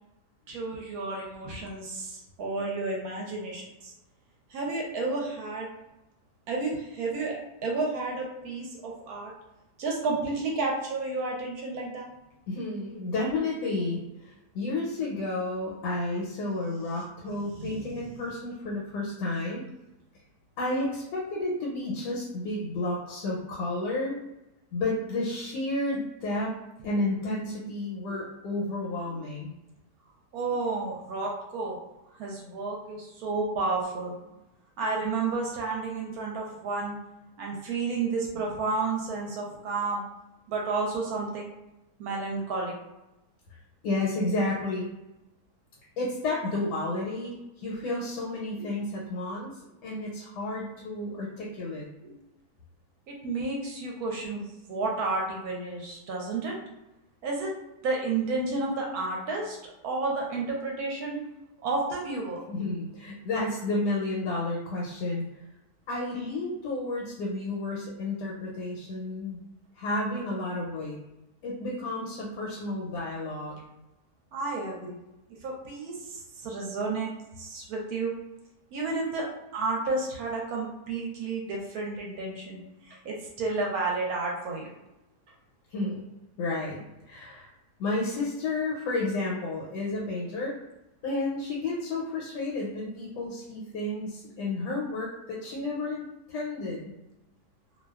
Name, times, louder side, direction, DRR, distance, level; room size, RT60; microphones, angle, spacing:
voice 1, 0.5-3.9 4.5-5.7 6.5-9.3 9.8-12.1 17.6-17.8 28.1-28.2 29.1-29.2 30.3-31.8 32.2-34.1 34.8-37.0 37.4-40.0 40.5-41.4 42.0-42.7 48.6-48.7 52.0-52.1 53.1-54.4 54.7-56.5 57.2-57.5 57.8-59.6 59.8-61.2 61.6-62.4 74.3-75.0 75.4-77.1 77.4-78.1 78.7-79.3 79.5-84.7, right 3 dB, 70° right, -1 dB, 1.0 m, -31 dB
voice 2, 12.5-19.6 20.6-24.2 24.7-26.5 26.8-29.5 43.8-44.9 46.0-49.5 49.8-51.9 62.5-65.2 65.9-69.4 69.8-71.0 71.4-73.6 85.7-86.0 86.4-87.5 87.8-90.6 91.0-96.9, left 2 dB, 85° left, -4 dB, 1.2 m, -31 dB
2.6 x 2.2 x 2.3 m, 0.94 s
omnidirectional pair, 1.7 m